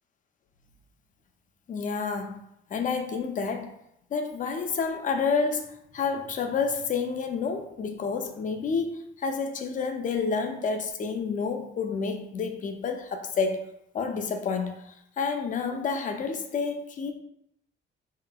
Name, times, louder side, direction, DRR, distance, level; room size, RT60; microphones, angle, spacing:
voice 1, 1.7-2.4 2.7-3.7 4.1-13.6 13.9-17.1, left 5 dB, 40° left, 6 dB, 0.4 m, -29 dB
3.0 x 2.8 x 2.2 m, 0.77 s
cardioid pair, 90°, 20 cm